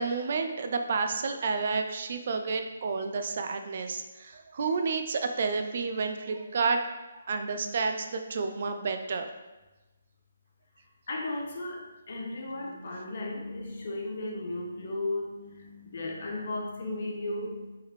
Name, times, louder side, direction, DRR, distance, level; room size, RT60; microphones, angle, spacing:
voice 1, 0.0-6.9 7.3-9.3, right 4 dB, 45° right, 6 dB, 0.3 m, -30 dB
voice 2, 11.1-17.8, left 2 dB, 50° left, -1 dB, 0.8 m, -35 dB
3.6 x 3.2 x 3.1 m, 1.1 s
hypercardioid pair, 170°, 0 cm